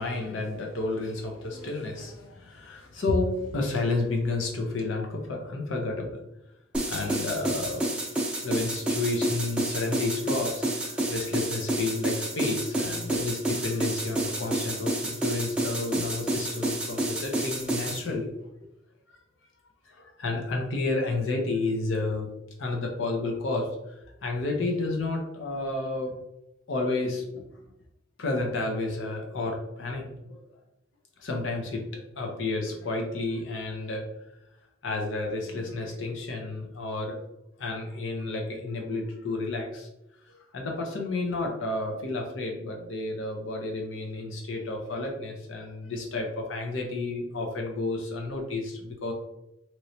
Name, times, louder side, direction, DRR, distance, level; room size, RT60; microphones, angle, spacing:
voice 1, 0.0-6.2 6.9-7.9 8.4-18.3 19.9-22.3 22.6-26.2 26.7-27.4 28.2-30.4 31.2-34.0 34.8-37.2 37.6-39.9 40.2-49.1, left 2 dB, 90° left, 1 dB, 0.7 m, -31 dB
sound 1, 6.7-18.0, right 1 dB, 5° right, 0.5 m, -29 dB
3.1 x 3.0 x 2.7 m, 0.86 s
head